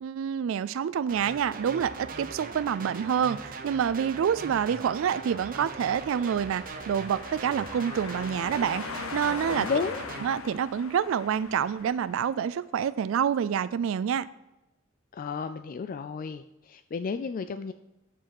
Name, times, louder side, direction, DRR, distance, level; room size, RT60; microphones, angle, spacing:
voice 1, 0.0-9.7 10.2-14.3, right 8 dB, 65° right, 15 dB, 0.3 m, -27 dB
sound 1, 1.1-10.2, right 4 dB, 45° right, 0.8 m, -40 dB
sound 2, 5.7-12.4, left 5 dB, 80° left, 0.7 m, -41 dB
voice 2, 9.5-10.0 15.1-17.7, left 5 dB, 40° left, 10 dB, 0.3 m, -32 dB
7.4 x 6.4 x 6.0 m, 0.96 s
head